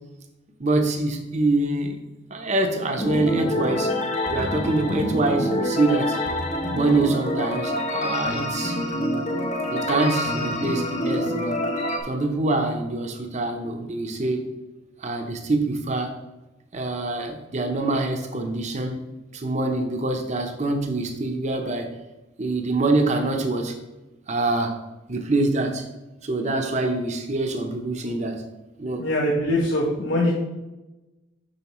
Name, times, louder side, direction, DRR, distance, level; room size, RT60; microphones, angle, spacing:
voice 1, 0.6-2.0 2.3-3.9 4.3-6.2 6.7-8.8 9.7-11.6 12.0-14.5 15.0-16.1 16.7-19.0 19.3-21.9 22.4-23.7 24.3-24.8 25.1-25.8 26.2-28.4 28.8-29.1, right 2 dB, 35° right, 4 dB, 0.7 m, -25 dB
sound 1, 3.0-12.0, left 1 dB, 35° left, 0.8 m, -26 dB
voice 2, 29.0-30.3, left 1 dB, 80° left, -3 dB, 1.1 m, -23 dB
7.0 x 5.7 x 3.0 m, 1.1 s
head